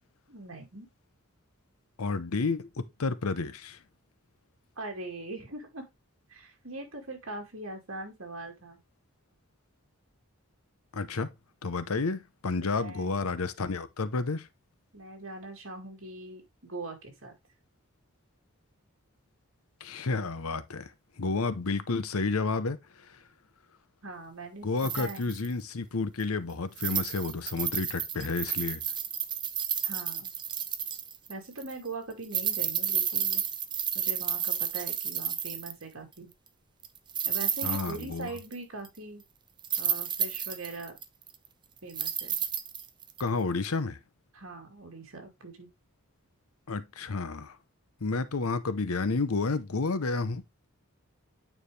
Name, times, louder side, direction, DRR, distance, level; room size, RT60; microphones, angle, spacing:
voice 1, 0.3-0.9 4.8-5.9 6.3-8.8 12.8-13.3 14.9-17.3 24.0-24.7 24.9-25.4 29.8-30.3 31.3-33.4 33.9-36.3 37.2-39.2 39.8-41.0 41.8-42.4 44.3-45.7, right 2 dB, 65° right, 2.5 m, -41 dB
voice 2, 2.0-3.8 10.9-11.3 11.6-14.5 19.8-20.9 21.2-23.2 24.6-28.8 37.6-38.3 43.2-44.0 46.7-47.6 48.0-50.4, left 3 dB, 80° left, 0.8 m, -31 dB
sound 1, 24.8-25.5 26.2-26.3 26.8-31.3 31.6-31.7 32.2-35.8 36.8-38.5 38.8-38.9 39.6-41.5 41.9-43.2 43.6-43.7, right 9 dB, 20° right, 0.5 m, -31 dB
9.1 x 4.8 x 3.3 m
head